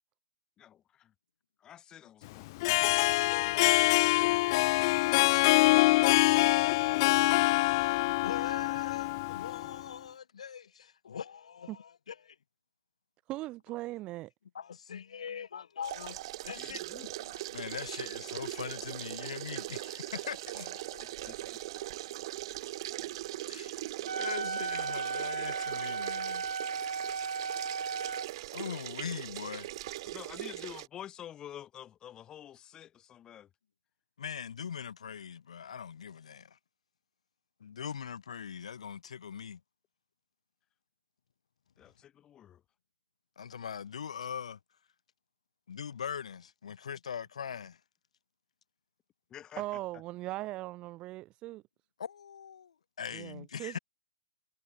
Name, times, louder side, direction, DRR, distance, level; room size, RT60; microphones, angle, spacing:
voice 1, 0.6-1.1 1.6-3.3 16.6-17.1 21.3-21.6 30.0-33.5 41.8-42.6 49.3-49.6, left 10 dB, 20° left, 7.6 m, -49 dB
Harp, 2.5-9.8, left 22 dB, 45° left, 0.6 m, -25 dB
voice 2, 8.2-12.4 14.5-16.2 16.4-21.3 23.5-23.9 24.1-26.5 28.5-29.7 34.2-36.6 37.6-39.6 43.4-44.6 45.7-47.8 52.0-53.8, left 7 dB, 75° left, 2.5 m, -42 dB
voice 3, 13.3-14.3 49.6-51.6 53.1-53.8, right 17 dB, 30° right, 1.7 m, -39 dB
sound 1, 15.8-30.9, right 16 dB, 50° right, 4.6 m, -40 dB
Wind instrument woodwind instrument, 24.0-28.3, right 5 dB, 90° right, 0.7 m, -35 dB
hypercardioid pair, 135°, 3 cm